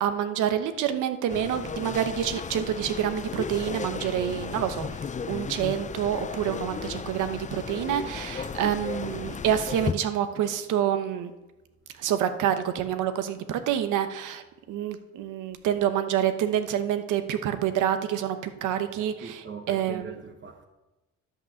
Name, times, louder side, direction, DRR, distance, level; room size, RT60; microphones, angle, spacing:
voice 1, 0.0-5.0 5.3-11.3 12.0-20.1, right 10 dB, 85° right, 1.0 m, -27 dB
sound 1, 1.3-9.9, left 6 dB, 25° left, 0.5 m, -35 dB
voice 2, 18.9-20.6, right 5 dB, 40° right, 1.1 m, -41 dB
11.5 x 5.8 x 6.5 m
cardioid pair, 90°, 30 cm